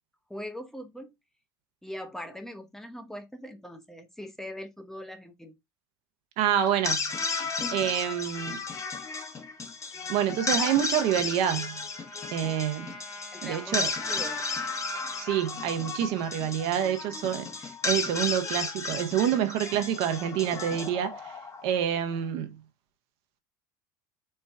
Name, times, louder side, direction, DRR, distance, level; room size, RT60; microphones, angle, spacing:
voice 1, 0.3-1.1 1.8-5.5 13.3-14.4, equal, 5° left, 0.8 m, -41 dB
voice 2, 6.4-7.3 7.7-8.6 10.1-11.9 12.3-12.9 13.4-13.9 15.2-22.6, right 10 dB, 65° right, 0.7 m, -27 dB
sound 1, 6.7-21.9, left 4 dB, 30° left, 0.9 m, -33 dB
Trumpet, 11.0-15.5, left 2 dB, 80° left, 1.6 m, -45 dB
4.4 x 2.3 x 3.3 m
hypercardioid pair, 80°, 11 cm